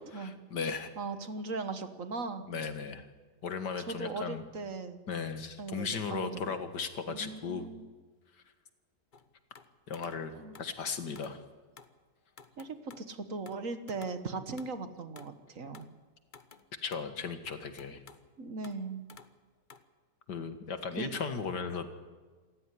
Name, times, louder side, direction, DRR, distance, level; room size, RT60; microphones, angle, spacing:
voice 1, 0.1-0.9 2.4-3.1 3.4-4.4 5.1-7.7 9.9-10.3 10.6-11.4 16.8-18.0 20.3-21.9, left 5 dB, 80° left, 9 dB, 2.4 m, -36 dB
voice 2, 1.0-2.4 3.8-5.0 5.6-6.3 7.1-7.8 10.3-10.6 12.6-15.9 18.4-19.0 21.0-21.1, right 3 dB, 50° right, 10 dB, 1.7 m, -38 dB
sound 1, 9.1-10.8 11.2-11.4 11.7-12.0 12.4-13.1 13.5-15.4 15.7-16.0 16.3-17.1 17.5-18.3 18.6-18.8 19.1-19.4 19.7-19.8, left 5 dB, 35° left, 1.1 m, -54 dB
27.5 x 15.5 x 9.9 m, 1.4 s
omnidirectional pair, 1.8 m